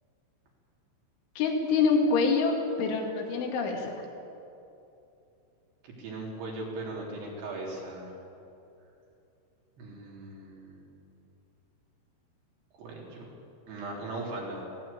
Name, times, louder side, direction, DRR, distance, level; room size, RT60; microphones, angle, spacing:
voice 1, 1.4-3.9, left 4 dB, 80° left, 2 dB, 4.7 m, -26 dB
voice 2, 5.8-8.2 9.8-10.9 12.7-13.3 13.7-14.7, right 2 dB, 60° right, -2 dB, 5.4 m, -39 dB
18.5 x 17.0 x 8.5 m, 2.8 s
omnidirectional pair, 5.5 m